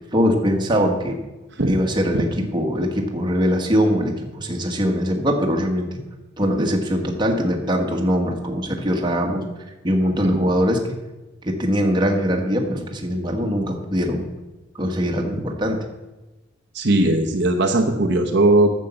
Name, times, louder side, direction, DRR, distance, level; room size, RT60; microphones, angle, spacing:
voice 1, 0.1-1.2 1.7-6.0 6.4-9.4 9.8-11.0 11.4-14.3 14.7-15.8, equal, 20° right, 2 dB, 1.4 m, -22 dB
voice 2, 16.7-18.7, right 2 dB, 55° right, 2 dB, 1.0 m, -18 dB
10.0 x 7.4 x 7.0 m, 1.1 s
head